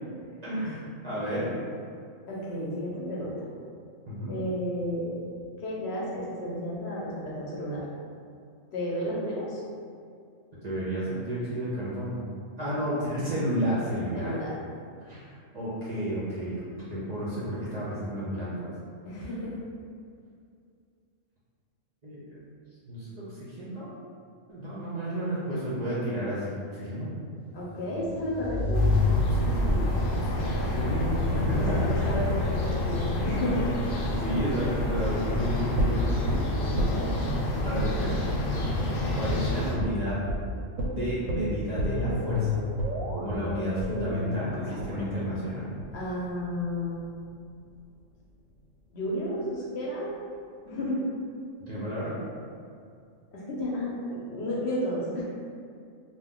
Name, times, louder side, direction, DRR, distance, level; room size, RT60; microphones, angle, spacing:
voice 1, 0.4-1.5 4.1-4.3 10.6-12.2 12.6-14.3 15.0-15.2 15.5-18.7 22.0-22.4 22.8-23.9 24.5-27.1 29.3-29.8 30.1-31.8 34.2-36.4 37.6-38.4 39.1-40.2 40.9-42.6 43.2-45.7 51.6-52.2, equal, 45° right, -9 dB, 0.5 m, -32 dB
voice 2, 2.3-3.3 4.3-5.2 5.6-7.8 8.7-9.6 14.1-14.5 19.1-19.5 27.5-28.8 29.7-29.8 31.5-33.7 36.7-37.2 45.9-47.0 48.9-50.1 50.7-51.1 53.3-55.2, left 1 dB, 60° left, -5 dB, 0.9 m, -32 dB
sound 1, 27.7-30.1, left 3 dB, 25° left, 0.5 m, -27 dB
sound 2, 28.7-39.8, left 1 dB, 85° left, 1.0 m, -28 dB
sound 3, 35.8-37.4 37.8-38.0 38.3-38.4 38.8-38.9 39.3-39.4 39.8-40.0 40.3-40.4 40.8-46.8 47.1-47.2, left 1 dB, 90° right, 1.0 m, -31 dB
2.5 x 2.2 x 3.6 m, 2.3 s
omnidirectional pair, 1.3 m